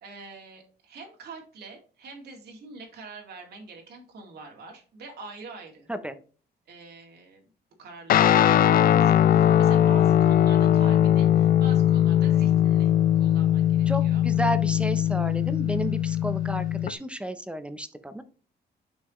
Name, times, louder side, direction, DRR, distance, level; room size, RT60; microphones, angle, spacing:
voice 1, 0.0-5.9 6.7-7.5 7.8-12.9 13.2-14.2 16.1-16.2, right 3 dB, 70° right, 1 dB, 2.0 m, -45 dB
Guitar, 8.1-16.9, left 11 dB, 55° left, 0.4 m, -20 dB
voice 2, 13.9-18.2, right 1 dB, 5° right, 11 dB, 0.5 m, -32 dB
6.3 x 5.6 x 3.0 m, 0.40 s
cardioid pair, 165°, 18 cm